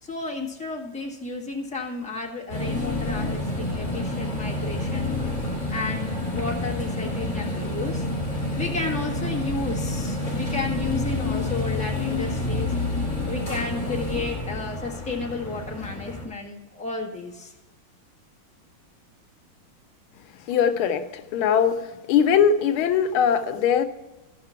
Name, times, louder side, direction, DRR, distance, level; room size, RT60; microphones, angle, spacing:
voice 1, 0.0-5.1 5.7-8.1 8.5-12.7 13.3-17.5, left 3 dB, 5° left, -2 dB, 1.3 m, -32 dB
sound 1, 2.5-16.3, left 2 dB, 20° left, 3.4 m, -28 dB
voice 2, 20.5-21.0 21.3-21.8 22.1-23.9, left 7 dB, 85° left, 9 dB, 1.5 m, -20 dB
14.5 x 5.8 x 5.6 m, 1.1 s
omnidirectional pair, 2.3 m